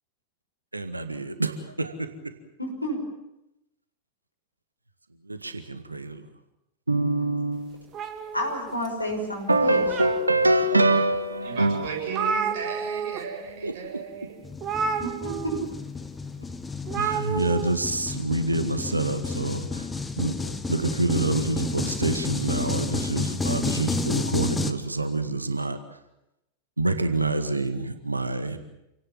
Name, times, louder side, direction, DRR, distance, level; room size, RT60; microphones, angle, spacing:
voice 1, 0.7-2.1 5.3-6.2 6.9-7.8 9.5-12.2 13.6-13.7 17.0-19.9 20.2-25.8 26.8-28.6, right 2 dB, 80° right, 9 dB, 1.9 m, -26 dB
voice 2, 2.6-3.0 8.3-9.9 14.9-15.8, equal, 85° left, 2 dB, 6.1 m, -30 dB
sound 1, 7.9-9.1 9.6-10.5 11.1-11.2 11.6-11.7 11.8-13.2 13.5-13.7 14.6-15.7 16.9-17.7, right 6 dB, 30° right, 2.5 m, -30 dB
voice 3, 11.4-14.4, right 6 dB, 55° right, 2 dB, 7.8 m, -35 dB
sound 2, 14.4-24.7, left 4 dB, 10° left, 1.5 m, -31 dB
28.5 x 18.0 x 7.4 m, 0.87 s
figure-of-eight pair, 90°, 0 cm